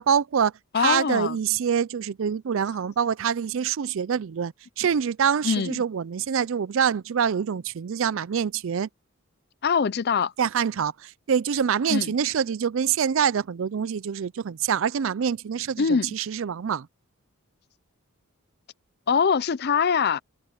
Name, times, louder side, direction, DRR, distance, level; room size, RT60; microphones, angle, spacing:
voice 1, 0.0-8.9 10.4-16.9, right 7 dB, 60° right, 0.4 m, -25 dB
voice 2, 0.7-1.4 5.4-5.7 9.6-10.3 11.9-12.1 15.8-16.1 19.1-20.2, left 6 dB, 45° left, 0.5 m, -23 dB
open air
head